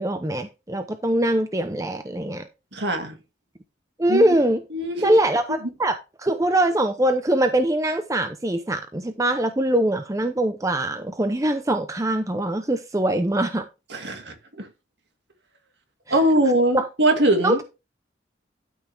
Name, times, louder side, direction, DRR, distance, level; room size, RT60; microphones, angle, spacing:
voice 1, 0.0-2.5 4.0-4.6 5.0-13.6 16.7-16.9 17.4-17.6, right 1 dB, 15° right, 0.6 m, -22 dB
voice 2, 2.7-3.2 4.1-4.4 4.7-5.1 5.6-5.7 13.9-14.7 16.1-17.6, right 1 dB, 60° right, 2.1 m, -22 dB
12.5 x 5.8 x 3.4 m
head